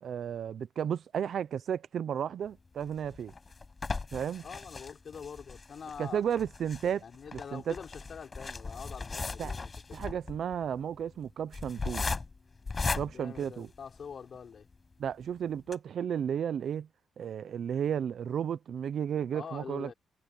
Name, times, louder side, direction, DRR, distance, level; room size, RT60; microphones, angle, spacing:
voice 1, 0.0-3.3 4.1-4.4 6.0-7.0 7.3-7.8 9.4-9.5 9.9-12.1 12.9-13.7 15.0-16.9 17.2-19.9, right 8 dB, 65° right, 0.9 m, -33 dB
sound 1, 2.8-14.2 14.7-14.8 15.1-15.2 15.6-15.7, left 4 dB, 30° left, 5.7 m, -38 dB
voice 2, 4.4-6.2 7.0-10.0 13.1-14.7 19.3-19.9, left 6 dB, 55° left, 4.5 m, -45 dB
cardioid pair, 90°, 0 cm